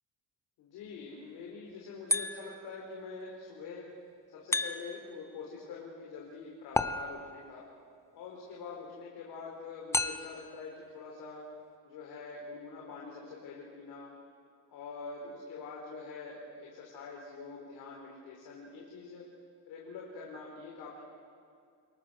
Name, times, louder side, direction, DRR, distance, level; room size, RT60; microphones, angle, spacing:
voice 1, 0.6-3.9 4.3-7.6 8.1-11.4 11.8-14.1 14.7-19.2 19.7-21.0, left 4 dB, 85° left, -2 dB, 4.4 m, -45 dB
sound 1, 2.1-2.7 4.5-5.2 6.7-7.5 9.9-10.5, left 2 dB, 10° left, 0.8 m, -32 dB
27.0 x 22.5 x 6.4 m, 2.4 s
cardioid pair, 140°, 35 cm